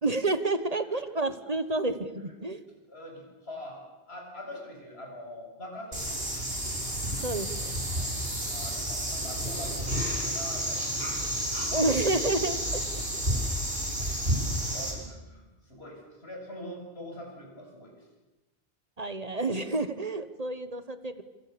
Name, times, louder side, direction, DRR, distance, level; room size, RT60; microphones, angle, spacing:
voice 1, 0.0-2.6 7.2-7.8 11.7-12.8 13.1-13.2 19.0-21.2, right 2 dB, 40° right, 11 dB, 1.4 m, -29 dB
voice 2, 2.9-3.8 4.1-6.3 8.0-8.1 8.5-11.8 12.4-12.8 14.7-18.1, left 1 dB, 85° left, 0 dB, 8.1 m, -44 dB
sound 1, 5.9-14.9, equal, 70° right, 7.2 m, -31 dB
27.0 x 26.0 x 7.0 m, 1.1 s
omnidirectional pair, 1.0 m